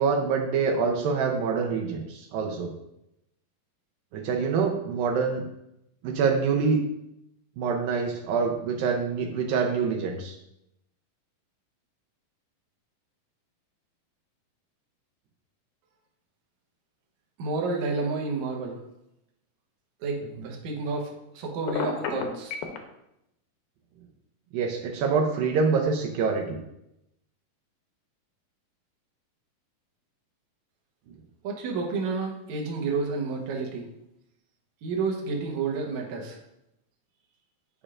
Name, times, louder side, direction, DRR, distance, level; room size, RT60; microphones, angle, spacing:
voice 1, 0.0-2.7 4.1-5.4 6.0-6.8 7.6-10.4 20.4-20.5 24.5-26.6, right 5 dB, 85° right, 1 dB, 2.4 m, -26 dB
voice 2, 17.4-18.8 20.0-22.6 31.4-33.9 34.8-36.4, right 4 dB, 65° right, 0 dB, 2.1 m, -30 dB
Telephone, 21.7-22.8, left 6 dB, 85° left, 2.5 m, -30 dB
9.7 x 5.1 x 2.5 m, 0.83 s
omnidirectional pair, 4.0 m